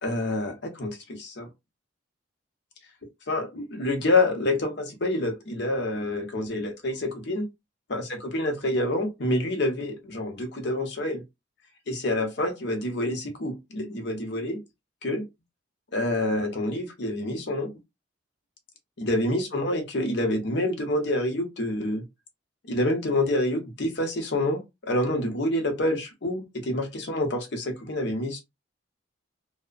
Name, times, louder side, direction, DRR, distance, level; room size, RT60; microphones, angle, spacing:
voice 1, 0.0-1.5 3.3-7.5 7.9-11.2 11.9-14.6 15.0-15.2 15.9-17.7 19.0-22.0 22.7-28.4, left 1 dB, 65° left, 0.7 m, -27 dB
2.7 x 2.1 x 2.4 m
head